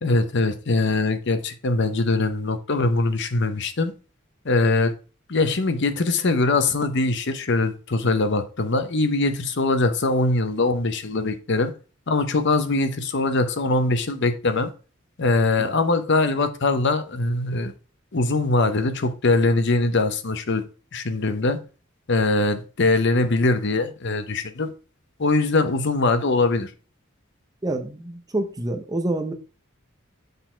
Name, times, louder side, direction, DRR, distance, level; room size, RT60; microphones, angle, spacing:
voice 1, 0.0-3.9 4.4-4.9 5.3-11.7 12.1-14.7 15.2-17.7 18.1-20.6 20.9-21.6 22.1-24.7 25.2-26.7, left 3 dB, 60° left, 0.8 m, -22 dB
voice 2, 27.6-29.3, right 2 dB, 20° right, 0.7 m, -27 dB
6.6 x 4.0 x 4.4 m
head